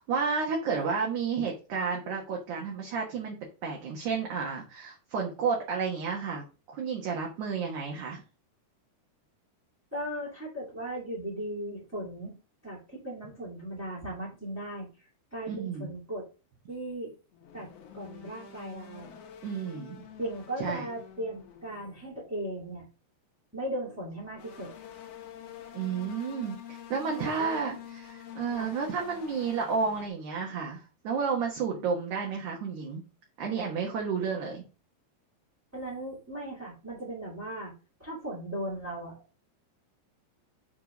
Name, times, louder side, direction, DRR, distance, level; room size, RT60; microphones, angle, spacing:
voice 1, 0.0-8.2 15.5-15.9 19.4-20.0 20.6-20.9 25.7-33.1 33.4-34.7, right 5 dB, 65° right, -1 dB, 2.3 m, -31 dB
voice 2, 9.9-12.3 12.6-14.9 15.3-16.2 16.7-17.1 17.5-17.7 17.9-19.1 20.2-22.8 23.5-24.7 27.1-27.6 28.6-28.7 35.7-37.7 38.0-39.2, right 1 dB, 5° right, -7 dB, 1.7 m, -37 dB
sound 1, 17.3-22.4 24.2-30.1, left 8 dB, 90° left, 1.4 m, -48 dB
7.2 x 3.8 x 5.0 m, 0.33 s
omnidirectional pair, 4.5 m